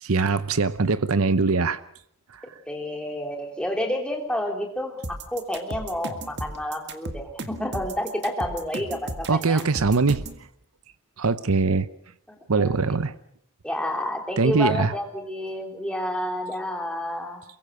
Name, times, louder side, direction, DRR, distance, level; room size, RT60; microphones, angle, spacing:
voice 1, 0.0-1.8 9.3-10.2 11.2-11.9 12.5-13.1 14.4-14.9, right 4 dB, 75° right, 0.8 m, -22 dB
voice 2, 2.7-5.0 5.3-9.6 12.6-12.8 13.6-17.4, left 1 dB, 5° left, 3.2 m, -29 dB
sound 1, 5.0-10.4, right 2 dB, 50° right, 1.8 m, -35 dB
23.5 x 22.5 x 6.5 m
head